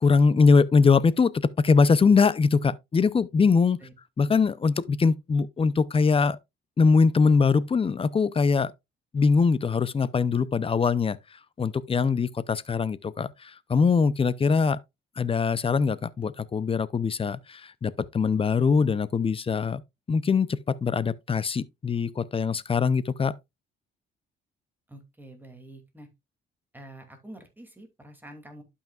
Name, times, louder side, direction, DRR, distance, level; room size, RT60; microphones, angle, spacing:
voice 1, 0.0-3.8 4.2-6.4 6.8-8.7 9.1-11.2 11.6-14.8 15.2-19.8 20.1-23.3, left 5 dB, 30° left, 0.6 m, -22 dB
voice 2, 24.9-26.1 26.7-28.6, right 1 dB, 10° right, 2.5 m, -47 dB
11.5 x 5.7 x 2.4 m
cardioid pair, 90°, 20 cm